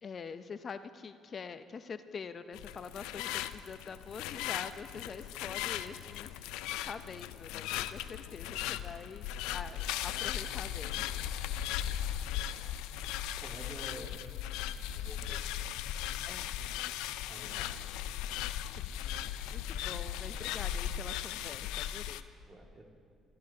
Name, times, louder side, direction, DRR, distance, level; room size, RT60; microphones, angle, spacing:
voice 1, 0.0-6.5 6.9-11.1 14.0-14.1 16.2-16.9 17.5-17.6 18.8-22.3, left 5 dB, 45° left, 11 dB, 0.6 m, -45 dB
sound 1, 2.5-22.2, left 11 dB, 85° left, 0.4 m, -37 dB
voice 2, 11.8-12.4 13.4-14.3 14.9-15.8 17.3-17.8 22.4-22.8, right 2 dB, 30° right, 1 dB, 2.2 m, -50 dB
29.5 x 13.5 x 2.9 m, 2.2 s
supercardioid pair, 70°, 0 cm